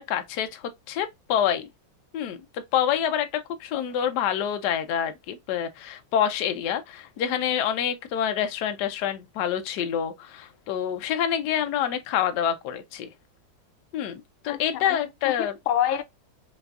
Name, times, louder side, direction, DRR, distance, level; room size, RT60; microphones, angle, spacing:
voice 1, 0.0-1.7 2.1-13.1 13.9-15.5, left 9 dB, 65° left, 1.2 m, -27 dB
voice 2, 14.5-16.0, left 11 dB, 90° left, 1.4 m, -28 dB
4.6 x 3.1 x 2.4 m
omnidirectional pair, 2.1 m